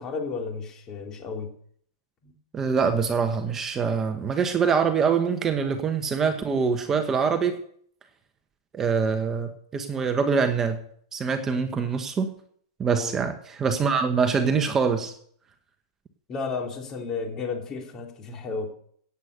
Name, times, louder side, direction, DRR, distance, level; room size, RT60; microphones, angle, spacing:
voice 1, 0.0-1.5 2.2-2.3 12.9-13.1 16.3-18.7, left 4 dB, 25° left, 2 dB, 3.2 m, -33 dB
voice 2, 2.5-7.5 8.7-10.8 11.1-12.3 12.8-15.1, right 5 dB, 20° right, 7 dB, 1.2 m, -24 dB
16.5 x 8.2 x 6.8 m, 0.63 s
supercardioid pair, 145°, 2 cm